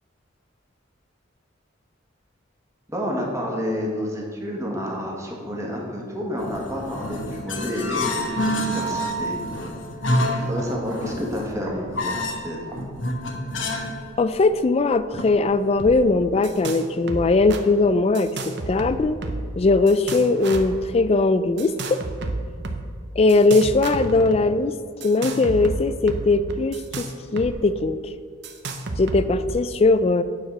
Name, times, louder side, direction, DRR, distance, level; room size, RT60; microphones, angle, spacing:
voice 1, 2.9-9.4 10.3-12.8, equal, 15° right, -2 dB, 1.6 m, -29 dB
sound 1, 6.4-14.0 14.3-14.4 15.2-15.7, equal, 70° left, 1.1 m, -28 dB
voice 2, 14.2-18.3 18.7-19.2 19.6-22.0 23.2-24.7 25.0-27.1 27.3-28.0 29.0-30.2, left 3 dB, 30° left, 13 dB, 0.3 m, -19 dB
sound 2, 15.8-16.0 16.2-16.8 17.1-17.6 18.1-19.5 19.9-20.8 21.6-22.8 23.3-24.4 25.0-27.5 27.8-27.9 28.4-29.5, right 2 dB, 60° right, 0.8 m, -31 dB
9.2 x 4.8 x 5.9 m, 2.2 s
head